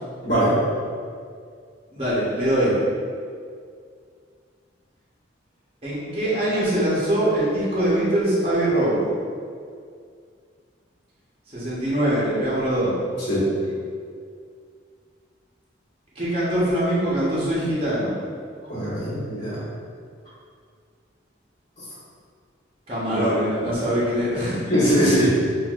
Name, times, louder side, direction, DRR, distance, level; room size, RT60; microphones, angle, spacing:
voice 1, 0.2-0.6 13.3-13.5 18.7-19.6 23.1-23.3 23.6-23.7 24.7-25.3, equal, 55° left, -11 dB, 1.4 m, -21 dB
voice 2, 1.9-2.8 5.8-9.2 11.5-12.9 16.1-18.1 22.9-24.6, right 1 dB, 30° right, -9 dB, 1.0 m, -23 dB
5.8 x 2.7 x 2.4 m, 2.1 s
head